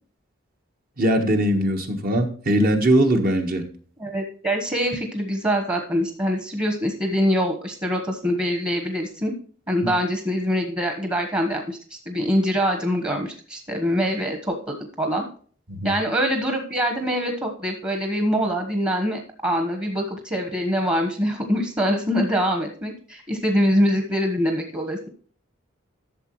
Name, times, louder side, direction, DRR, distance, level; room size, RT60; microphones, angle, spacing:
voice 1, 1.0-3.7 15.7-15.9, right 1 dB, 45° right, 4 dB, 1.4 m, -20 dB
voice 2, 4.0-9.3 9.7-15.2 15.8-25.1, equal, 20° right, 3 dB, 1.3 m, -24 dB
12.5 x 6.9 x 3.2 m, 0.44 s
head